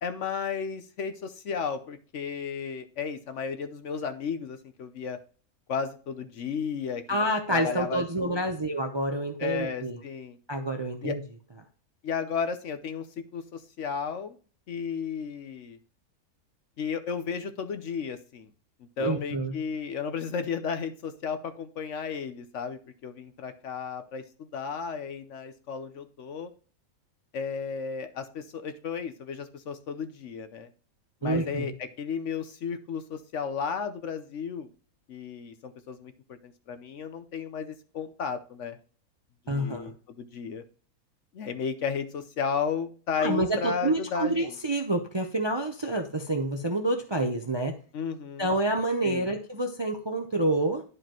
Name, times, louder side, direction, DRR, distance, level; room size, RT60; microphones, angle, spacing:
voice 1, 0.0-5.2 5.7-7.2 7.5-8.5 9.4-10.4 11.0-11.2 12.0-14.4 14.7-15.8 16.8-18.5 19.0-26.5 27.3-30.7 31.2-34.7 35.1-38.8 39.5-40.6 41.3-44.6 47.9-48.5 49.0-49.3, left 6 dB, 60° left, 9 dB, 1.0 m, -34 dB
voice 2, 7.1-10.0 10.5-11.2 19.0-19.5 31.2-31.7 39.5-39.9 43.2-47.8 48.4-50.8, right 1 dB, 30° right, 4 dB, 0.5 m, -28 dB
11.0 x 4.9 x 3.0 m, 0.40 s
omnidirectional pair, 1.6 m